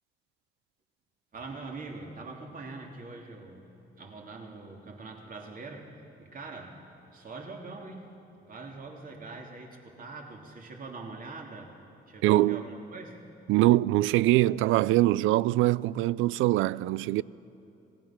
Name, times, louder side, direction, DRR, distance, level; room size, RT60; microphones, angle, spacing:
voice 1, 1.3-3.7 3.9-5.9 6.2-6.8 7.1-8.1 8.4-11.7 12.1-13.2, right 3 dB, 45° right, 3.0 m, -43 dB
voice 2, 12.2-12.6 13.5-17.2, right 16 dB, 90° right, 0.4 m, -23 dB
26.0 x 18.5 x 6.0 m
cardioid pair, 90°, 20 cm